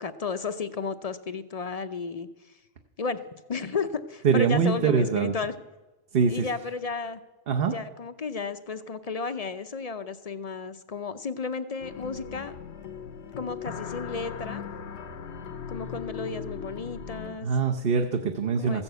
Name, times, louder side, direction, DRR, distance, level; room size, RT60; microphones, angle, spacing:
voice 1, 0.0-2.3 3.0-3.2 3.5-5.5 6.3-7.2 7.6-12.5 13.4-14.6 15.7-17.5 18.6-18.8, left 4 dB, 45° left, 10 dB, 0.5 m, -33 dB
voice 2, 4.2-5.3 6.1-6.5 7.5-7.7 17.4-18.8, right 5 dB, 60° right, 3 dB, 1.0 m, -23 dB
sound 1, 11.8-17.3, left 7 dB, 75° left, 1.1 m, -38 dB
14.5 x 7.0 x 8.0 m, 1.1 s
omnidirectional pair, 1.2 m